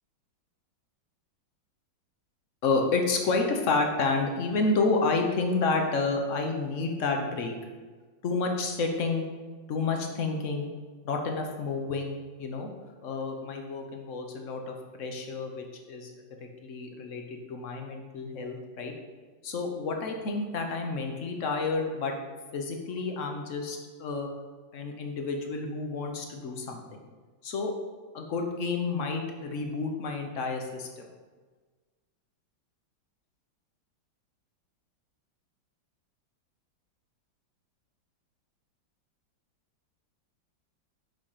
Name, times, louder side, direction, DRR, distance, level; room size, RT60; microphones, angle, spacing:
voice 1, 2.6-7.5 8.2-9.2 9.7-10.7 11.0-12.7 13.0-16.1 16.6-18.9 19.4-22.1 22.5-24.3 24.7-27.1 27.4-27.7 28.1-31.1, left 3 dB, 50° left, 3 dB, 1.1 m, -30 dB
6.4 x 6.2 x 4.9 m, 1.4 s
omnidirectional pair, 2.1 m